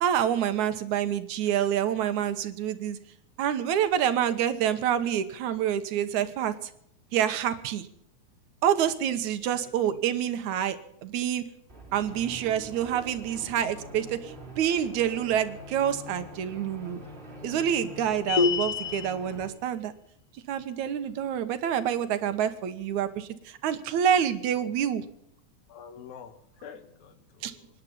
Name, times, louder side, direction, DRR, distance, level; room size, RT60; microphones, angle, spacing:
voice 1, 0.0-3.0 3.4-6.5 7.1-7.9 8.6-11.4 11.9-17.0 17.4-19.9 20.5-25.0 27.4-27.5, right 9 dB, 75° right, 11 dB, 2.5 m, -27 dB
voice 2, 9.5-10.0 24.6-24.7 25.7-26.3 26.6-27.6, left 7 dB, 75° left, 11 dB, 2.8 m, -47 dB
sound 1, 11.7-19.5, left 1 dB, 20° right, 3.9 m, -45 dB
sound 2, 18.3-19.1, left 5 dB, 55° left, 1.0 m, -25 dB
25.0 x 10.5 x 5.5 m, 0.73 s
omnidirectional pair, 3.4 m